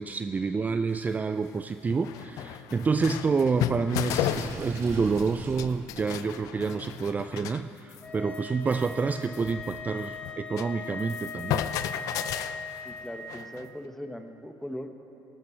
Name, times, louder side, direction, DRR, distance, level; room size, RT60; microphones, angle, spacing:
voice 1, 0.0-11.7 12.6-12.8, right 5 dB, 25° right, 10 dB, 0.4 m, -28 dB
sound 1, 0.9-1.0 1.6-1.7 1.9-5.3 5.6-7.6 7.9-8.1 8.3-8.4 8.7-10.7 11.0-13.7, left 12 dB, 70° left, 0.5 m, -34 dB
Water / Sink (filling or washing), 4.1-5.8, right 2 dB, 50° right, 2.5 m, -40 dB
sound 2, 8.0-13.2, left 4 dB, 25° left, 1.6 m, -39 dB
voice 2, 12.8-14.9, equal, 5° left, 6 dB, 1.2 m, -39 dB
17.0 x 12.5 x 4.6 m, 2.9 s
supercardioid pair, 75°, 6 cm